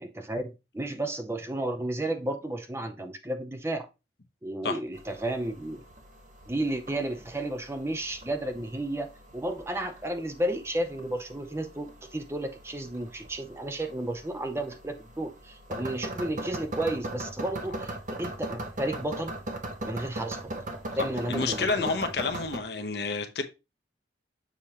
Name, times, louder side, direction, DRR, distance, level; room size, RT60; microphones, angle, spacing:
voice 1, 0.0-3.9 4.4-5.8 6.5-9.1 9.3-19.3 19.8-20.6 21.0-21.9, right 1 dB, 15° right, 0.5 m, -32 dB
sound 1, 4.9-22.6, right 1 dB, 45° right, 1.0 m, -40 dB
voice 2, 21.3-23.4, left 4 dB, 60° left, 0.8 m, -29 dB
7.1 x 4.9 x 2.9 m
head